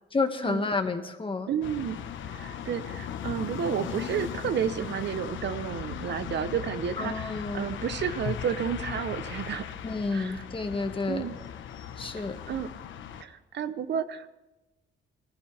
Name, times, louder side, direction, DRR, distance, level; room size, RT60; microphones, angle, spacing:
voice 1, 0.1-1.5 7.0-7.7 9.8-11.2 12.0-12.4, left 3 dB, 25° left, 6 dB, 1.7 m, -30 dB
voice 2, 1.5-2.0 2.3-9.8 10.1-10.4 11.1-11.3 12.2-12.7 13.2-14.3, right 8 dB, 60° right, 12 dB, 0.9 m, -31 dB
sound 1, 1.6-13.2, left 9 dB, 75° left, 1.2 m, -38 dB
20.0 x 14.5 x 3.5 m, 1.1 s
cardioid pair, 90°, 20 cm